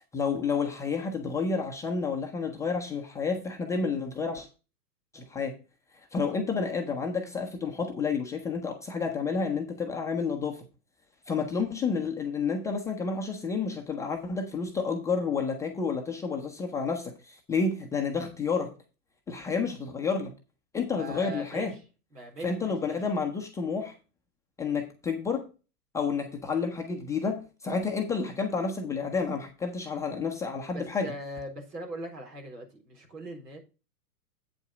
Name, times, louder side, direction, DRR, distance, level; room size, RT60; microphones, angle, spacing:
voice 1, 0.1-4.5 5.1-5.6 6.1-10.6 11.3-18.7 19.3-20.3 20.7-21.7 22.4-23.9 24.6-25.5 25.9-31.1, left 5 dB, 5° left, 0.5 m, -30 dB
voice 2, 20.9-21.7 22.1-23.0 30.7-33.6, equal, 90° right, 4.2 m, -40 dB
8.4 x 5.3 x 5.0 m
hypercardioid pair, 130°, 47 cm